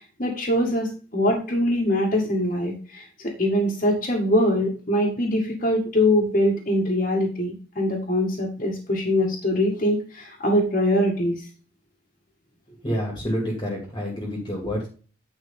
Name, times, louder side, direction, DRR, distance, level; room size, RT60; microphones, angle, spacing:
voice 1, 0.2-11.4, left 1 dB, 40° left, -5 dB, 2.0 m, -23 dB
voice 2, 12.7-14.9, equal, 20° left, -2 dB, 2.5 m, -28 dB
9.9 x 5.5 x 3.7 m, 0.38 s
head